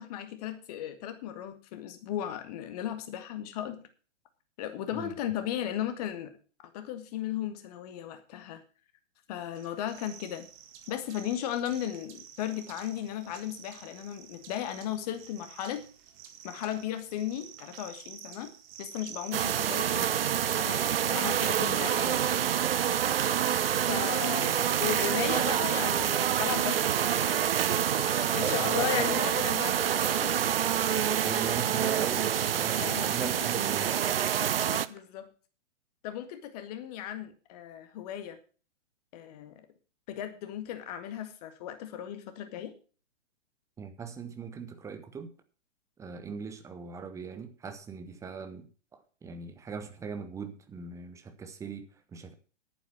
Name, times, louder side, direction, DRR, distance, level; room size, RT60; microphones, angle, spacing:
voice 1, 0.0-3.8 4.6-6.3 6.7-8.6 9.3-10.5 10.9-15.9 16.4-18.5 18.8-20.2 20.5-22.2 23.9-27.4 28.0-30.4 32.8-33.5 34.3-35.3 36.0-38.4 39.1-39.7 40.1-42.7, left 11 dB, 30° left, 9 dB, 1.9 m, -36 dB
sound 1, 9.5-20.4, right 9 dB, 25° right, 1.8 m, -50 dB
sound 2, 19.3-34.9, right 9 dB, 50° right, 0.7 m, -27 dB
voice 2, 28.4-29.1 31.2-33.9 43.8-45.3 46.0-52.3, right 6 dB, 10° right, 9 dB, 1.1 m, -39 dB
sound 3, 30.2-35.0, right 1 dB, 85° right, 2.7 m, -45 dB
11.0 x 9.2 x 6.2 m, 0.38 s
figure-of-eight pair, 120°, 37 cm